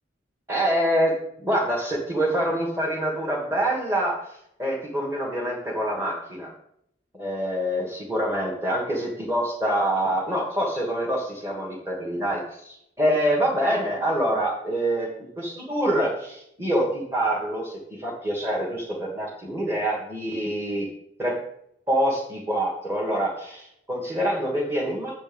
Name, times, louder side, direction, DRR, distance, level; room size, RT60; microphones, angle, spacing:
voice 1, 0.5-6.5 7.1-20.9 21.2-21.4 21.9-25.1, right 1 dB, 15° right, -5 dB, 1.6 m, -26 dB
7.6 x 4.4 x 6.9 m, 0.73 s
head